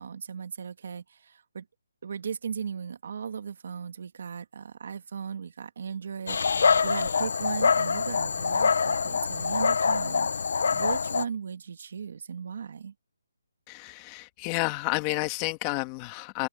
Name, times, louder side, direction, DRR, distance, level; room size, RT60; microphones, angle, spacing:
voice 1, 0.0-1.7 2.0-12.9, right 7 dB, 45° right, 1.7 m, -37 dB
Dog, 6.3-11.2, left 5 dB, 55° left, 0.5 m, -25 dB
voice 2, 13.7-16.5, left 22 dB, 15° left, 1.5 m, -30 dB
open air
hypercardioid pair, 175°, 0 cm